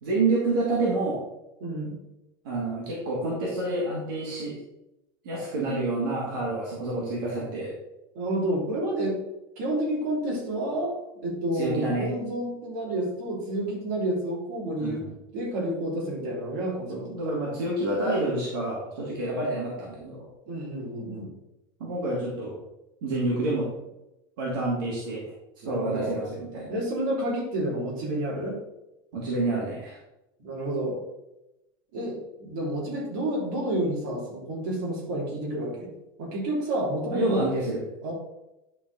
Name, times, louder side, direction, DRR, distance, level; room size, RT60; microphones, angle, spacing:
voice 1, 0.0-1.2 2.4-4.6 5.2-7.7 11.5-12.1 14.8-15.1 16.9-20.3 21.8-22.5 23.0-23.7 24.4-25.2 25.7-26.7 29.1-30.0 37.1-37.8, right 2 dB, 70° right, -5 dB, 2.6 m, -28 dB
voice 2, 1.6-2.0 8.1-9.2 9.6-11.0 11.2-15.0 15.3-16.9 20.5-21.3 25.6-26.1 26.7-28.6 30.4-31.0 31.9-35.9 36.2-37.5 38.0-38.1, right 1 dB, 55° right, -4 dB, 3.1 m, -29 dB
10.5 x 4.2 x 4.1 m, 0.92 s
supercardioid pair, 175°, 12 cm